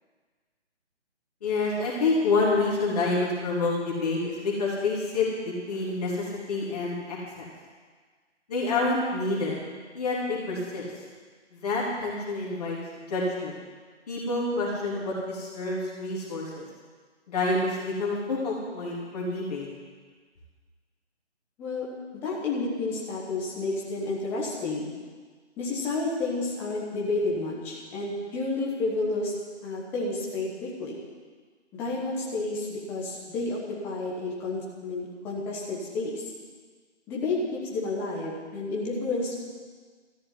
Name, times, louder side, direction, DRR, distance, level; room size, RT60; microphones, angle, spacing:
voice 1, 1.4-7.5 8.5-9.5 9.9-10.9 11.5-12.8 13.1-13.5 14.1-16.6 17.3-19.7, left 3 dB, 35° left, -5 dB, 3.4 m, -28 dB
voice 2, 21.6-24.9 25.6-29.3 29.6-31.0 31.7-33.6 33.8-36.2 37.1-39.4, left 3 dB, 5° left, -4 dB, 1.1 m, -30 dB
13.5 x 6.6 x 9.9 m, 1.5 s
figure-of-eight pair, 160°, 36 cm